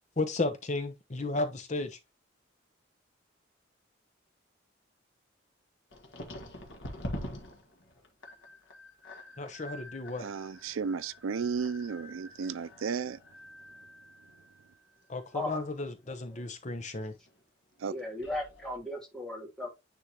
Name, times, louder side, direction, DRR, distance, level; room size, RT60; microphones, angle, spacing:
voice 1, 0.2-2.0 9.4-10.3 15.1-17.1, left 2 dB, 35° left, 0.8 m, -33 dB
sound 1, 5.9-16.8 17.0-17.4 17.8-18.8, left 1 dB, 75° left, 1.7 m, -46 dB
voice 2, 10.2-13.2 17.8-17.9, right 5 dB, 90° right, 0.4 m, -34 dB
voice 3, 17.9-19.7, left 1 dB, ahead, 2.7 m, -36 dB
9.9 x 3.8 x 2.9 m
head